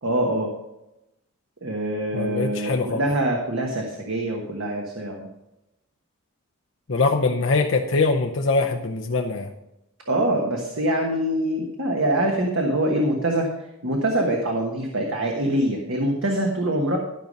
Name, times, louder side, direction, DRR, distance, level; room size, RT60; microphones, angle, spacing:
voice 1, 0.0-0.5 1.6-5.3 10.1-17.0, right 1 dB, 60° right, 1 dB, 1.3 m, -24 dB
voice 2, 2.1-3.0 6.9-9.5, left 3 dB, 60° left, 2 dB, 0.7 m, -23 dB
13.0 x 5.4 x 5.3 m, 0.91 s
head